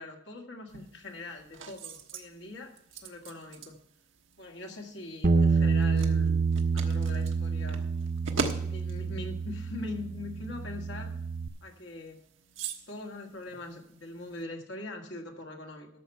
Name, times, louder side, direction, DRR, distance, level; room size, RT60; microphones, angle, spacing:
voice 1, 0.0-3.8 4.4-6.4 6.7-7.8 8.5-11.1 11.6-12.2 12.9-15.9, left 2 dB, 65° left, 1 dB, 1.8 m, -42 dB
sound 1, 0.7-14.4, right 4 dB, 85° right, 1.3 m, -43 dB
Bass guitar, 5.2-11.5, right 5 dB, 45° right, 0.6 m, -28 dB
13.0 x 6.8 x 5.6 m, 0.70 s
head